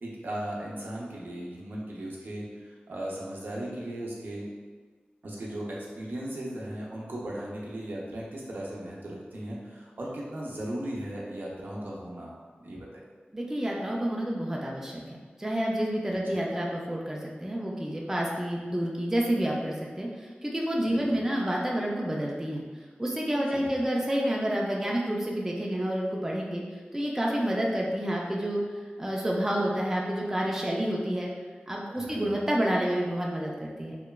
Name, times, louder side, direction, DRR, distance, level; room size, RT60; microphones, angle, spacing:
voice 1, 0.0-4.5 5.2-12.3 12.6-12.9 20.8-21.3 23.5-23.8 31.9-32.4, right 1 dB, 70° right, -5 dB, 0.5 m, -37 dB
voice 2, 13.3-20.1 20.4-22.6 23.0-26.6 26.9-28.6 29.0-31.3 31.7-34.0, equal, 10° right, -3 dB, 0.3 m, -29 dB
2.9 x 2.1 x 2.2 m, 1.4 s
wide cardioid pair, 65°, 4 cm